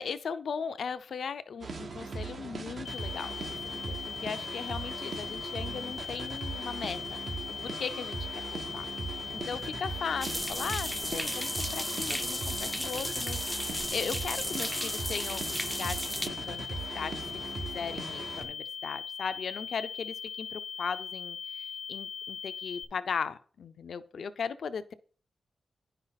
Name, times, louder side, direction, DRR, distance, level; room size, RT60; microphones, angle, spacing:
voice 1, 0.0-7.2 7.5-8.2 8.5-8.8 9.3-24.9, left 6 dB, 75° left, 12 dB, 0.6 m, -38 dB
sound 1, 1.6-18.4, right 4 dB, 65° right, 1.5 m, -39 dB
sound 2, 2.8-22.8, left 7 dB, 90° left, 1.1 m, -40 dB
sound 3, 10.2-16.3, equal, 5° right, 0.6 m, -35 dB
9.8 x 5.5 x 4.1 m, 0.43 s
supercardioid pair, 45°, 0 cm